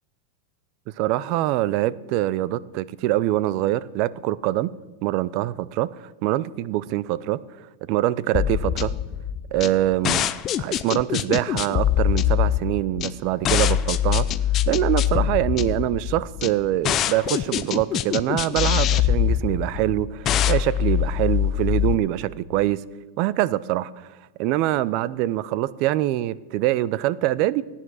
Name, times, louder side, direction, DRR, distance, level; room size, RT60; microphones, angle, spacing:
voice 1, 1.0-4.7 5.0-7.4 7.9-8.9 9.5-10.3 10.6-14.2 14.7-22.8 23.2-24.1 24.4-27.6, right 15 dB, 50° right, 0.5 m, -24 dB
sound 1, 8.3-21.9, left 11 dB, 30° left, 0.6 m, -23 dB
16.0 x 9.8 x 6.3 m
supercardioid pair, 145°, 0 cm